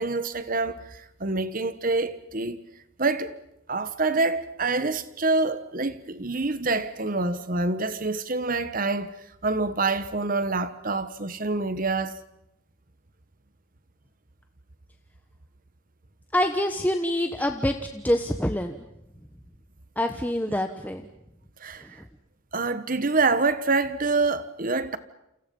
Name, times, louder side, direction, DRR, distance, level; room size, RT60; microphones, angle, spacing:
voice 1, 0.0-2.6 3.0-3.3 3.7-9.2 9.4-12.1 20.5-20.6 21.6-22.0 22.5-25.0, right 3 dB, 45° right, 1.3 m, -26 dB
voice 2, 16.3-18.8 20.0-21.0, left 1 dB, 10° left, 1.2 m, -26 dB
29.0 x 28.5 x 5.5 m
head